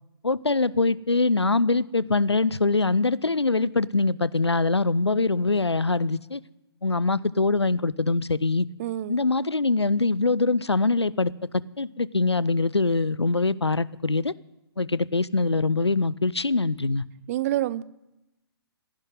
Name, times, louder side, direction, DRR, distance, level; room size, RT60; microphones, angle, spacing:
voice 1, 0.2-6.4 6.8-8.7 9.1-14.3 14.8-17.0, left 3 dB, 90° left, 21 dB, 0.5 m, -23 dB
voice 2, 8.8-9.2 17.3-17.8, right 14 dB, 35° right, 20 dB, 0.5 m, -27 dB
15.0 x 10.5 x 9.1 m, 0.94 s
figure-of-eight pair, 125°, 13 cm